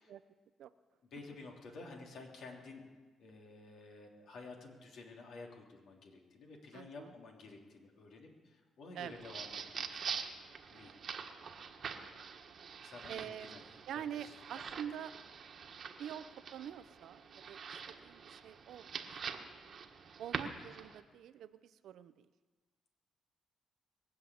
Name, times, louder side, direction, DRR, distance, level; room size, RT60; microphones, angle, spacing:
voice 1, 1.1-2.8 3.2-10.1 10.7-10.9 12.8-13.6 13.9-14.6, left 3 dB, 70° left, 0 dB, 3.2 m, -52 dB
voice 2, 6.7-7.1 8.9-9.2 13.1-15.1 16.0-17.6 17.9-19.4 20.2-22.3, right 9 dB, 75° right, 13 dB, 0.7 m, -46 dB
sound 1, 9.0-21.0, right 6 dB, 55° right, 1.4 m, -45 dB
21.5 x 7.6 x 8.6 m, 1.4 s
cardioid pair, 90°, 0 cm